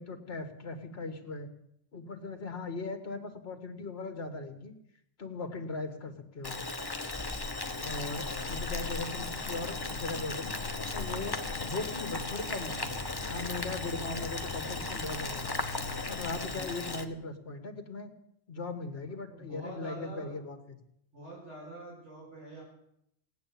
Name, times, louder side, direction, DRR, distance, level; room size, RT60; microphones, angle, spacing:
voice 1, 0.0-1.5 1.9-4.7 5.2-6.6 7.8-10.5 10.9-12.9 13.3-15.7 16.1-18.1 18.5-20.8, left 3 dB, 60° left, 6 dB, 2.1 m, -39 dB
Boiling, 6.4-17.0, left 3 dB, 20° left, 1.0 m, -37 dB
sound 1, 7.4-16.4, left 4 dB, 90° left, 1.5 m, -43 dB
voice 2, 8.1-8.8 16.5-17.1 19.0-20.3 21.1-22.6, right 1 dB, 75° right, -5 dB, 7.0 m, -46 dB
18.0 x 9.3 x 8.6 m, 0.76 s
omnidirectional pair, 1.2 m